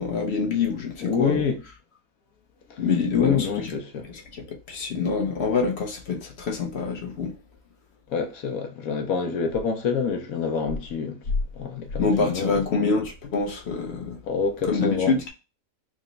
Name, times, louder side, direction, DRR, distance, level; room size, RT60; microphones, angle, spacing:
voice 1, 0.0-1.4 2.8-3.7 4.3-4.4 4.7-7.3 12.0-14.2 14.7-15.3, left 4 dB, 55° left, 0.9 m, -25 dB
voice 2, 1.0-1.6 2.7-2.8 3.1-4.1 8.1-11.2 11.5-12.6 14.2-15.1, left 6 dB, 75° left, 1.1 m, -27 dB
3.9 x 2.2 x 3.8 m
omnidirectional pair, 1.5 m